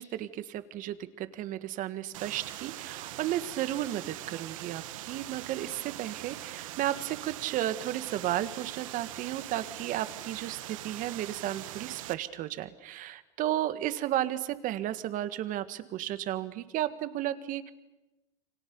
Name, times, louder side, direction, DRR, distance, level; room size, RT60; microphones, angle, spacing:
voice 1, 0.0-10.6 10.8-17.7, right 13 dB, 55° right, 12 dB, 1.8 m, -33 dB
sound 1, 2.1-12.1, right 15 dB, 80° right, 1.2 m, -42 dB
29.0 x 25.0 x 7.1 m, 1.0 s
supercardioid pair, 100°, 17 cm